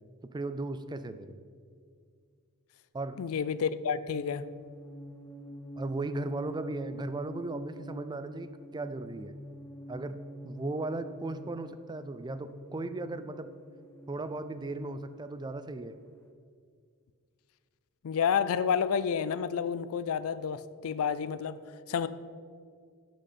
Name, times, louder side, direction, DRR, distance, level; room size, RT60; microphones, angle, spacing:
voice 1, 0.3-1.4 2.9-3.2 5.8-9.4 9.9-10.2 10.4-13.5 14.1-16.0, right 2 dB, 20° right, 11 dB, 0.4 m, -36 dB
voice 2, 3.2-4.5 18.0-21.6 21.9-22.1, left 7 dB, 70° left, 15 dB, 0.4 m, -30 dB
sound 1, 4.1-16.1, equal, 10° left, 0.8 m, -47 dB
11.5 x 6.3 x 4.3 m, 2.1 s
head